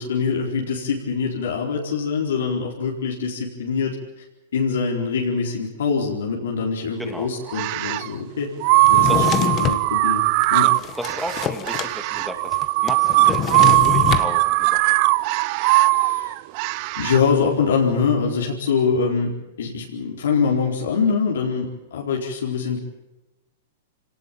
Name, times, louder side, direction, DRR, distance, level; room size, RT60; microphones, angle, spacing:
voice 1, 0.0-4.0 4.5-8.5 8.9-10.7 15.9-16.3 17.0-19.3 19.6-22.8, left 5 dB, 85° left, -1 dB, 4.4 m, -24 dB
voice 2, 7.0-7.3 9.1-9.4 10.6-14.9, equal, ahead, 5 dB, 2.6 m, -34 dB
sound 1, 7.5-8.1 8.6-17.2, right 20 dB, 45° right, 0.7 m, -19 dB
Drawer open or close, 8.8-9.8 10.4-11.9 12.2-12.3 12.5-14.3, left 10 dB, 30° left, 1.6 m, -25 dB
25.5 x 18.5 x 7.3 m, 1.0 s
hypercardioid pair, 135°, 0 cm